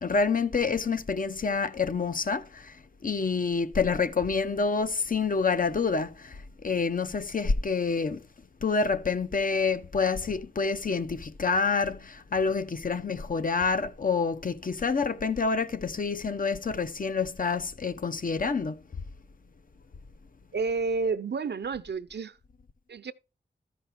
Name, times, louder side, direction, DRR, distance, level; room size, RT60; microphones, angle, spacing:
voice 1, 0.0-8.3 8.6-18.8, left 4 dB, 50° left, 0.7 m, -28 dB
voice 2, 20.5-22.4 22.9-23.1, right 4 dB, 65° right, 0.6 m, -30 dB
13.0 x 5.2 x 4.5 m
wide cardioid pair, 70°, 19 cm